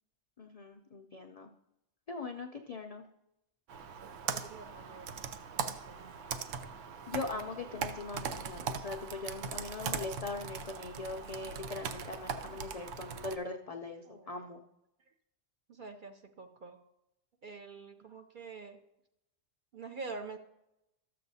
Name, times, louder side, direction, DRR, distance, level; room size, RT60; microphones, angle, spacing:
voice 1, 0.4-1.5 2.1-3.0 7.1-14.6, left 3 dB, 65° left, 3 dB, 0.3 m, -41 dB
Computer keyboard, 3.7-13.4, right 6 dB, 75° right, 0.9 m, -40 dB
voice 2, 4.0-5.1 5.6-6.2 14.0-14.4 15.7-16.8 17.4-18.8 19.7-20.4, right 4 dB, 55° right, 5 dB, 0.6 m, -46 dB
13.0 x 7.5 x 2.7 m, 0.86 s
omnidirectional pair, 1.3 m